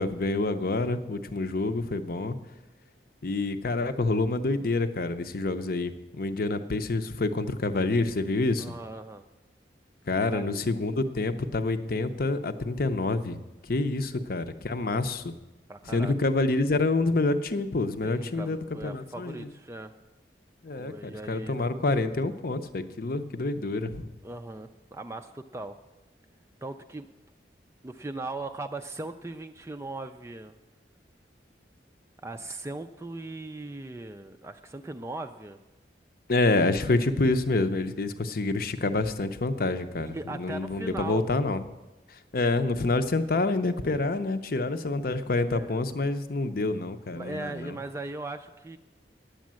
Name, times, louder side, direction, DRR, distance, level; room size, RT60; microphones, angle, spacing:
voice 1, 0.0-2.4 3.2-8.7 10.1-13.4 13.7-15.3 15.9-19.5 20.6-24.1 36.3-41.6 42.3-47.8, left 2 dB, 55° left, 10 dB, 0.7 m, -27 dB
voice 2, 8.6-9.2 10.3-10.7 14.1-14.3 14.8-14.9 15.7-16.1 18.0-19.9 20.7-21.7 24.2-25.8 26.6-27.1 27.8-30.5 32.2-35.6 40.0-41.3 45.5-45.8 47.1-48.8, right 2 dB, 15° right, 7 dB, 0.3 m, -39 dB
10.5 x 8.3 x 7.5 m, 1.1 s
head